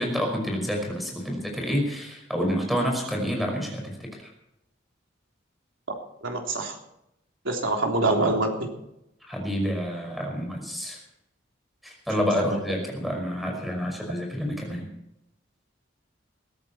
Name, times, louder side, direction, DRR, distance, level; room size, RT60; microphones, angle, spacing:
voice 1, 0.0-4.2 9.2-11.0 11.8-14.9, equal, ahead, 1 dB, 5.4 m, -28 dB
voice 2, 6.2-6.8 7.5-8.7, right 2 dB, 85° right, 1 dB, 3.4 m, -25 dB
21.5 x 14.0 x 4.4 m, 0.83 s
head